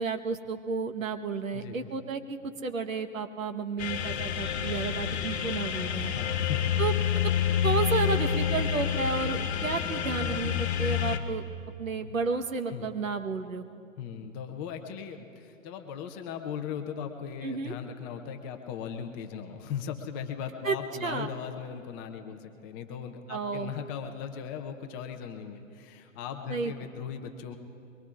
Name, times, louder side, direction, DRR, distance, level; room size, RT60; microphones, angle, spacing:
voice 1, 0.0-6.1 6.8-6.9 7.6-11.4 11.8-13.6 17.4-17.8 20.6-21.3 23.3-23.7 26.5-26.7, right 4 dB, 85° right, 6 dB, 1.3 m, -32 dB
voice 2, 1.5-1.9 5.0-5.3 6.1-6.9 12.0-12.1 12.7-12.9 14.0-27.6, left 7 dB, 15° left, 5 dB, 0.5 m, -38 dB
sound 1, 3.8-11.2, left 9 dB, 55° left, 1.3 m, -28 dB
23.0 x 22.0 x 2.5 m, 2.4 s
hypercardioid pair, 130°, 39 cm